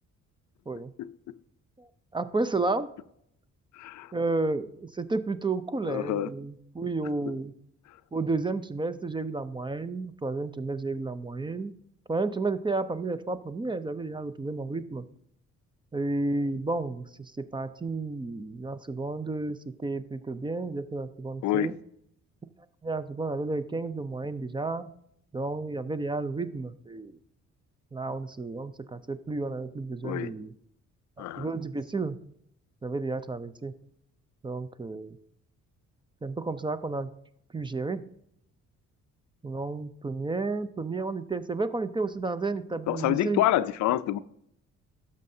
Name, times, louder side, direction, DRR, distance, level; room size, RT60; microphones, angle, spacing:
voice 1, 1.8-2.9 4.1-7.5 8.1-11.7 12.1-15.0 15.9-21.7 22.8-24.9 25.3-27.1 27.9-30.5 31.2-32.2 32.8-33.7 34.4-35.2 36.2-37.1 37.5-38.0 39.4-43.4, right 3 dB, 15° right, 0.4 m, -32 dB
voice 2, 3.7-4.1 5.8-6.3 21.4-21.7 30.0-30.3 31.2-31.5 42.9-44.2, left 13 dB, 70° left, 0.4 m, -27 dB
12.0 x 6.5 x 2.7 m
cardioid pair, 90°, 30 cm